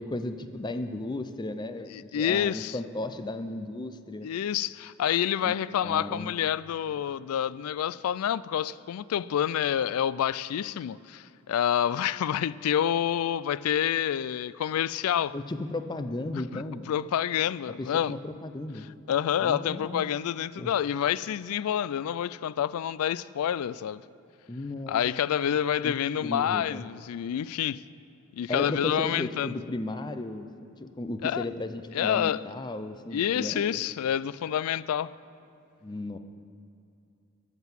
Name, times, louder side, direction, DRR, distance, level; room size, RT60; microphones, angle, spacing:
voice 1, 0.0-4.3 5.4-5.5 5.8-6.4 15.3-16.9 17.8-18.9 19.4-20.0 20.6-20.7 24.5-25.1 25.8-25.9 26.2-26.8 28.5-30.5 30.8-33.6 35.8-36.2, left 2 dB, 20° left, 0.5 m, -35 dB
voice 2, 1.9-2.8 4.2-15.3 16.3-16.6 16.9-18.1 19.1-24.0 24.9-27.8 28.3-29.5 31.2-31.4 31.9-32.4 33.1-35.1, left 9 dB, 80° left, 0.3 m, -28 dB
13.0 x 6.0 x 7.3 m
head